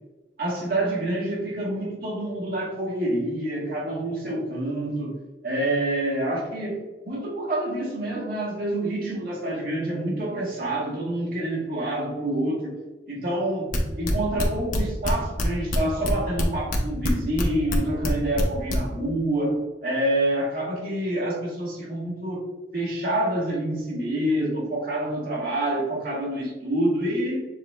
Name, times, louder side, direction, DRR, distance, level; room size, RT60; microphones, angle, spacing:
voice 1, 0.4-5.2 5.4-12.8 13.1-13.7 14.0-27.5, right 1 dB, 55° right, -3 dB, 1.3 m, -27 dB
sound 1, 13.7-15.4 15.7-17.4 17.7-18.8, left 2 dB, 50° left, 0.8 m, -26 dB
6.8 x 3.4 x 2.2 m, 1.2 s
head